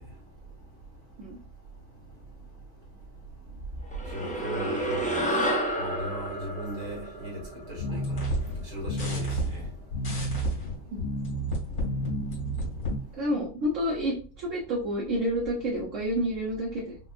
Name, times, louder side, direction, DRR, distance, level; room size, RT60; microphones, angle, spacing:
sound 1, 3.9-8.6, right 1 dB, 5° left, 0.8 m, -31 dB
voice 1, 4.1-5.3 5.8-7.4 7.7-8.2 8.7-9.3, equal, 85° right, 2.2 m, -37 dB
sound 2, 7.8-13.0, right 1 dB, 75° left, 2.2 m, -30 dB
voice 2, 13.2-17.0, equal, 60° right, 1.3 m, -29 dB
5.2 x 2.5 x 2.4 m
omnidirectional pair, 1.5 m